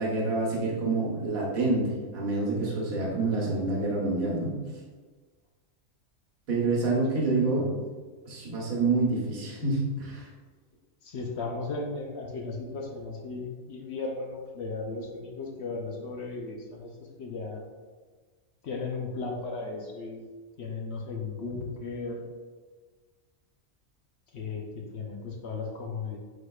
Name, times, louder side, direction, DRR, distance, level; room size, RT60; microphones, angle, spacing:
voice 1, 0.0-4.6 6.5-7.7 8.3-10.3, right 3 dB, 90° right, -3 dB, 1.5 m, -27 dB
voice 2, 7.3-7.8 11.0-16.9 17.2-17.6 18.6-20.3 20.6-22.2 24.3-26.2, left 3 dB, 60° left, 1 dB, 0.8 m, -36 dB
4.9 x 4.0 x 2.3 m, 1.4 s
omnidirectional pair, 1.4 m